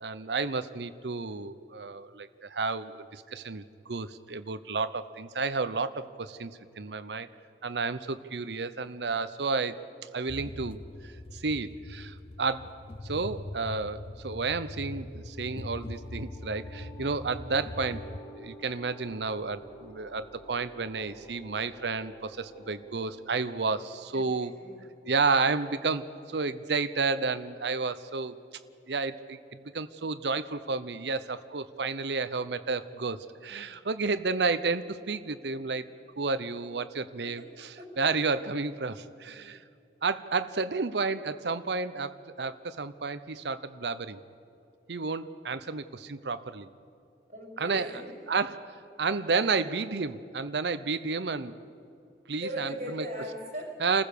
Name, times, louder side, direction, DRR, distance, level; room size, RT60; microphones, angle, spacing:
voice 1, 0.0-7.3 7.6-9.8 10.1-12.7 13.0-18.0 18.4-24.5 25.0-28.3 28.9-35.8 36.2-39.6 40.0-44.2 44.9-46.7 47.6-47.9 48.3-51.5 52.3-53.0 53.8-54.0, right 4 dB, 80° right, 13 dB, 0.8 m, -31 dB
sound 1, 10.3-18.2, left 2 dB, 35° left, 0.4 m, -42 dB
sound 2, 15.0-25.3, right 2 dB, 15° left, 2.6 m, -51 dB
voice 2, 24.1-24.8 37.2-38.0 47.3-48.1 52.4-53.8, equal, 40° right, 0 dB, 6.5 m, -39 dB
28.0 x 15.5 x 6.8 m, 2.5 s
head